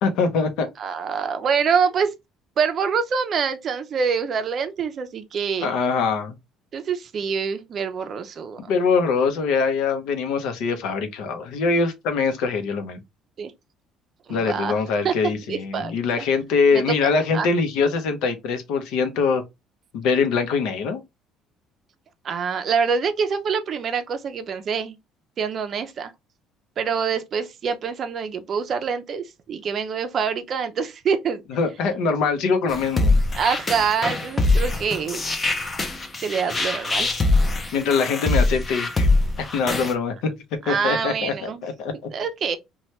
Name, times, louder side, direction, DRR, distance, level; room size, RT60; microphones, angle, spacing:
voice 1, 0.0-0.7 5.6-6.3 8.7-13.0 14.3-19.4 19.9-21.0 31.5-33.2 37.7-39.1 39.5-40.4 40.6-42.1, left 5 dB, 70° left, 0.7 m, -23 dB
voice 2, 0.8-2.1 2.6-5.8 6.7-8.7 13.4-13.5 14.3-14.8 15.0-15.1 15.5-16.3 16.7-17.5 22.2-25.0 25.4-26.1 26.8-31.4 33.3-35.2 36.2-37.1 40.6-41.6 42.1-42.6, right 6 dB, 35° right, 0.5 m, -25 dB
sound 1, 32.7-39.9, left 2 dB, 20° left, 0.5 m, -22 dB
2.9 x 2.2 x 3.1 m
cardioid pair, 160°, 0 cm